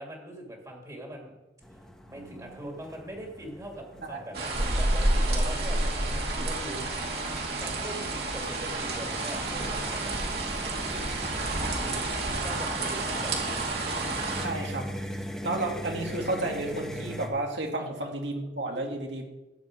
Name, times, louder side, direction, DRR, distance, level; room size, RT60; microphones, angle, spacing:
voice 1, 0.0-1.3 2.1-7.0 7.6-10.2 10.8-11.0 11.5-13.5 17.7-17.9, equal, 20° right, 0 dB, 2.1 m, -42 dB
sound 1, 1.6-17.3, equal, 5° left, 1.3 m, -42 dB
voice 2, 2.1-2.6 4.0-4.2 14.4-14.9 15.4-19.3, right 2 dB, 80° right, 2 dB, 2.2 m, -32 dB
sound 2, 4.3-14.5, right 2 dB, 60° right, 2.5 m, -29 dB
13.5 x 4.8 x 8.6 m, 1.0 s
head